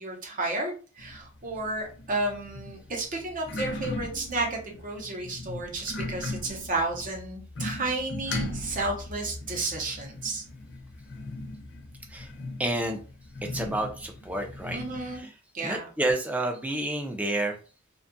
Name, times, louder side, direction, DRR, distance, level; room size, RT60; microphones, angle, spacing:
voice 1, 0.0-10.4 14.7-15.3 15.5-15.9, right 2 dB, 40° right, 1 dB, 0.7 m, -32 dB
sound 1, 1.0-15.2, left 2 dB, 55° left, 0.6 m, -38 dB
voice 2, 12.6-13.0 13.5-14.8 15.1-15.3 15.6-17.6, right 1 dB, 5° right, 3 dB, 0.4 m, -29 dB
2.6 x 2.3 x 2.5 m, 0.38 s
head